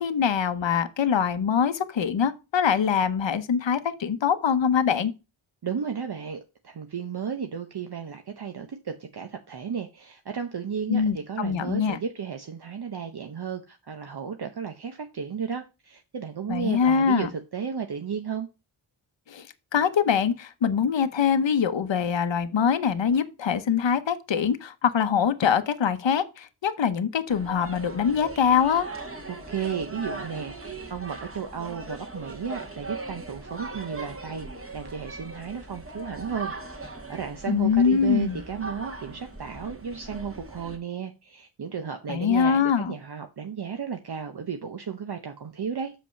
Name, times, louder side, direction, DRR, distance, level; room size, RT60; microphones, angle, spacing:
voice 1, 0.0-5.1 10.9-12.0 16.5-17.3 19.3-19.5 19.7-28.9 37.5-38.4 42.1-42.9, left 7 dB, 65° left, 0.9 m, -23 dB
voice 2, 5.6-18.5 29.3-45.9, right 7 dB, 55° right, 0.9 m, -34 dB
sound 1, 27.3-40.8, right 2 dB, 30° right, 2.2 m, -39 dB
6.7 x 5.1 x 5.6 m
wide cardioid pair, 60°, 48 cm